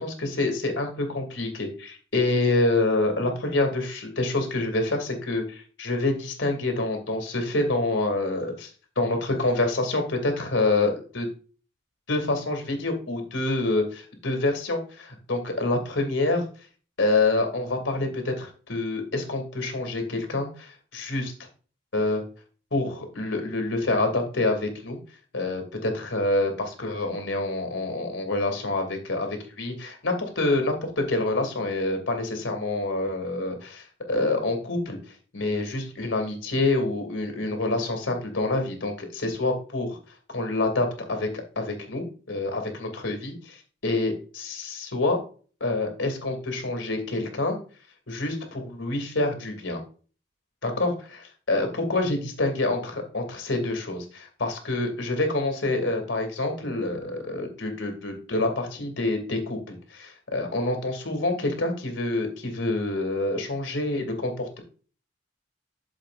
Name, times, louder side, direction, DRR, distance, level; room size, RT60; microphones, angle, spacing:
voice 1, 0.0-8.7 9.0-11.3 12.1-16.4 17.0-21.3 21.9-22.2 22.7-25.0 25.3-35.0 35.3-40.0 40.3-41.3 41.6-45.2 45.6-47.6 48.1-49.8 50.6-64.6, left 2 dB, 80° left, 4 dB, 2.5 m, -27 dB
11.5 x 7.2 x 2.5 m, 0.39 s
head